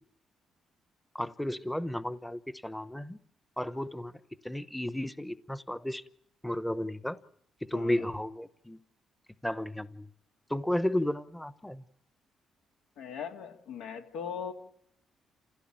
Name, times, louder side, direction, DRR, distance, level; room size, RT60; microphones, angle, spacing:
voice 1, 1.1-3.2 3.6-4.1 4.4-6.0 6.4-7.2 7.6-8.8 9.4-10.1 10.5-11.8, left 1 dB, 5° left, 15 dB, 0.9 m, -33 dB
voice 2, 7.7-8.1 13.0-14.5, left 7 dB, 90° left, 4 dB, 2.8 m, -39 dB
29.0 x 16.0 x 8.9 m, 0.72 s
cardioid pair, 90°, 0 cm